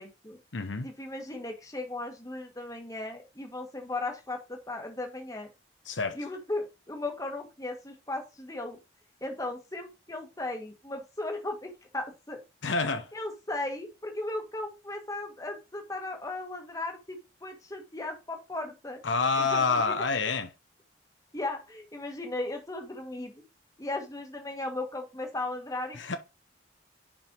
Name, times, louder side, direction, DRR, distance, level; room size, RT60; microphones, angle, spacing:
voice 1, 0.0-0.4 0.8-5.5 6.1-8.8 9.2-12.4 13.1-19.0 19.4-20.0 21.3-23.4 23.8-26.2, left 2 dB, 20° left, 1.4 m, -36 dB
voice 2, 0.5-0.9 5.9-6.2 12.6-13.1 19.0-20.5 25.9-26.2, left 4 dB, 75° left, 0.9 m, -27 dB
5.4 x 5.3 x 4.5 m
head